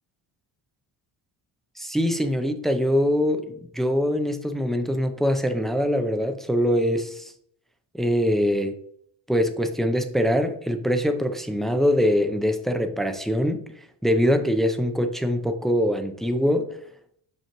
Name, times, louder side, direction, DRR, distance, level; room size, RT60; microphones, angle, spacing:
voice 1, 1.8-7.3 7.9-8.7 9.3-13.6 14.0-16.7, equal, ahead, 7 dB, 0.4 m, -23 dB
6.1 x 5.4 x 3.0 m, 0.67 s
cardioid pair, 115°, 49 cm